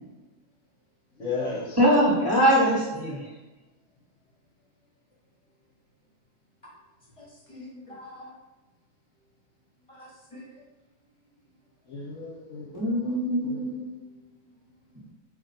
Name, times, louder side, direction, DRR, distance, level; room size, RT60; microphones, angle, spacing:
voice 1, 1.2-1.8 11.9-13.2 13.4-13.6, left 4 dB, 55° left, -4 dB, 1.1 m, -34 dB
voice 2, 1.8-3.2 12.7-13.9, equal, 15° right, -7 dB, 0.9 m, -22 dB
voice 3, 7.2-8.3 9.9-10.5 14.9-15.1, left 1 dB, 20° left, -5 dB, 1.2 m, -46 dB
4.4 x 2.8 x 4.1 m, 1.1 s
omnidirectional pair, 1.7 m